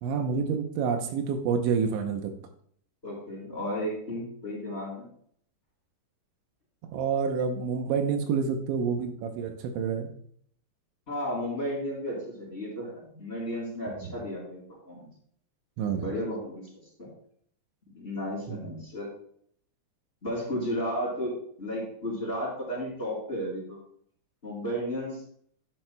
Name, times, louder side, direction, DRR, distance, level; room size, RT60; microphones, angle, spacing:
voice 1, 0.0-2.3 6.9-10.1 15.8-16.0 18.5-18.7, right 6 dB, 85° right, 6 dB, 3.2 m, -28 dB
voice 2, 3.0-5.1 11.1-15.1 15.9-17.1 17.9-19.1 20.2-21.3 21.6-23.8 24.4-25.2, equal, 15° left, -5 dB, 3.8 m, -33 dB
11.0 x 10.5 x 2.3 m, 0.62 s
omnidirectional pair, 5.2 m